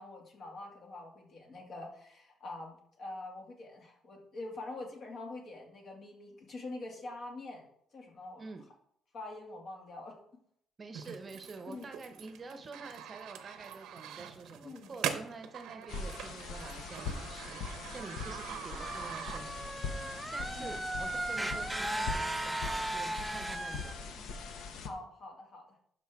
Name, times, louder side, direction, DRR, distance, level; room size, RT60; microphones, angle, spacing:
voice 1, 0.0-7.7 7.9-8.4 9.1-10.2 11.7-11.9 14.6-14.9 20.6-20.8 24.8-25.8, left 2 dB, 50° left, 1 dB, 2.2 m, -45 dB
voice 2, 10.8-19.7 20.2-24.3, right 3 dB, 30° right, 7 dB, 0.8 m, -48 dB
sound 1, 10.9-19.8, right 9 dB, 85° right, 0.8 m, -43 dB
sound 2, 15.9-24.9, left 5 dB, 75° left, 0.9 m, -42 dB
sound 3, 18.8-23.9, right 1 dB, 5° right, 0.5 m, -36 dB
11.5 x 5.6 x 3.6 m, 0.67 s
cardioid pair, 120°, 0 cm